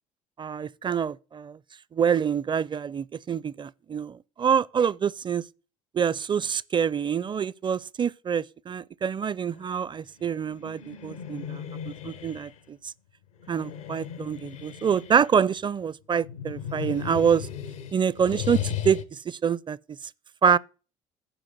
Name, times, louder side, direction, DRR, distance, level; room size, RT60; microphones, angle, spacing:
voice 1, 0.4-1.6 1.9-5.4 5.9-12.8 13.5-17.5 17.9-19.8 20.4-20.6, right 7 dB, 30° right, 0.5 m, -26 dB
sound 1, 10.2-12.5 13.4-15.4 16.1-19.0, left 9 dB, 85° left, 0.9 m, -36 dB
9.0 x 5.0 x 7.7 m
hypercardioid pair, 55°, 17 cm